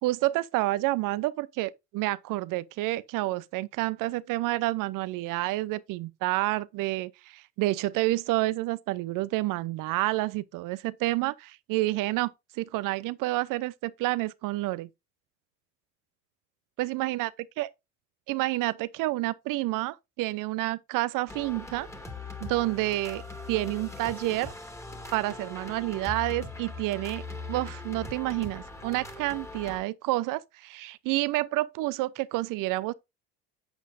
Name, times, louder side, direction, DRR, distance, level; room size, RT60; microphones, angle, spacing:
voice 1, 0.0-14.9 16.8-17.3 17.6-17.7 18.3-21.9 22.4-23.2 23.5-24.5 25.1-27.2 27.5-32.9, right 18 dB, 50° right, 0.7 m, -29 dB
sound 1, 21.3-29.8, left 3 dB, 5° left, 2.1 m, -40 dB
8.2 x 7.9 x 2.6 m
hypercardioid pair, 70°, 43 cm